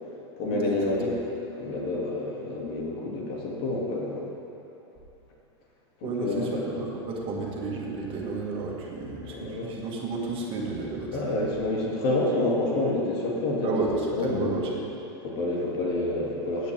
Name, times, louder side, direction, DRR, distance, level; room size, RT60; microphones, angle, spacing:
voice 1, 0.4-1.1 1.6-4.2 6.0-6.6 9.3-9.7 11.1-14.6 15.2-16.7, left 2 dB, 60° left, -3 dB, 2.4 m, -28 dB
voice 2, 6.0-11.5 13.6-14.8, right 3 dB, 40° right, -2 dB, 1.8 m, -32 dB
15.0 x 8.4 x 3.5 m, 3.0 s
supercardioid pair, 120°, 14 cm